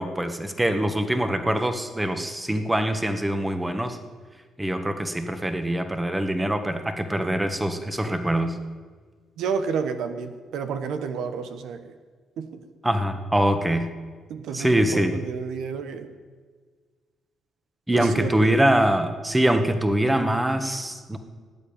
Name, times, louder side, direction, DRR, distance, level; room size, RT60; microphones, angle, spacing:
voice 1, 0.0-4.0 4.6-8.5 12.8-13.9 14.5-15.1 17.9-21.2, right 1 dB, 10° right, 7 dB, 1.6 m, -23 dB
voice 2, 9.4-11.9 12.4-12.5 14.3-16.1 17.9-18.4, right 6 dB, 80° right, 8 dB, 1.2 m, -30 dB
18.0 x 8.8 x 8.9 m, 1.5 s
cardioid pair, 90°, 0 cm